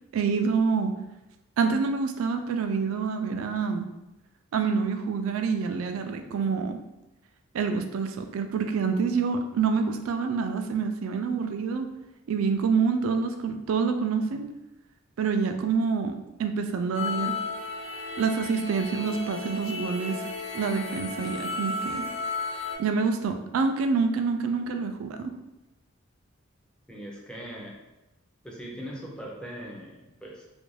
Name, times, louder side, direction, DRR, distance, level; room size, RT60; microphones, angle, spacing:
voice 1, 0.1-0.9 1.6-3.9 4.5-6.8 7.5-11.9 12.3-14.5 15.2-17.4 18.2-20.2 20.5-22.1 22.8-25.3, right 5 dB, 80° right, 6 dB, 0.3 m, -27 dB
sound 1, 16.9-22.8, left 4 dB, 65° left, 0.6 m, -34 dB
voice 2, 26.9-27.7 28.4-30.5, equal, 5° left, -3 dB, 0.5 m, -40 dB
2.5 x 2.2 x 3.1 m, 0.96 s
head